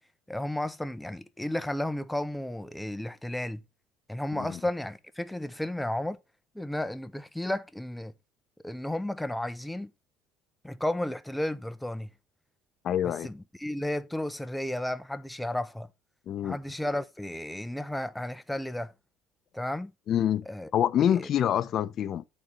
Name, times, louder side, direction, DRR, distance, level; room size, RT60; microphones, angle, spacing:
voice 1, 0.3-3.6 4.1-6.2 6.5-8.1 8.6-9.9 10.6-12.1 13.0-15.9 16.4-18.9 19.5-19.9 20.5-20.7 21.2-21.3, left 1 dB, 5° left, 0.8 m, -33 dB
voice 2, 12.8-13.3 16.3-16.6 20.1-20.4 20.7-22.2, left 10 dB, 55° left, 0.7 m, -26 dB
9.5 x 4.3 x 5.3 m
supercardioid pair, 75°, 0 cm